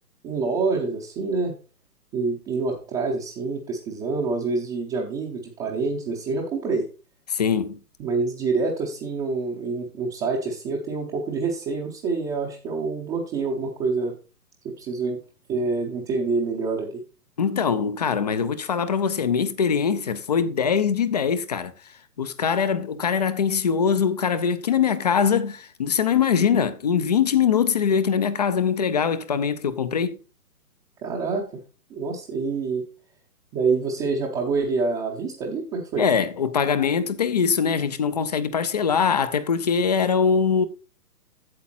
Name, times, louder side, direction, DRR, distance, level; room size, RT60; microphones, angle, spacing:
voice 1, 0.2-1.5 2.1-6.9 8.0-14.1 14.6-15.2 15.5-17.0 31.0-31.5 31.9-32.9 33.5-36.1, right 4 dB, 10° right, 0.7 m, -26 dB
voice 2, 7.3-7.8 17.4-21.7 22.2-30.2 36.0-40.7, left 7 dB, 25° left, 0.5 m, -22 dB
8.6 x 7.1 x 4.3 m
hypercardioid pair, 140°, 48 cm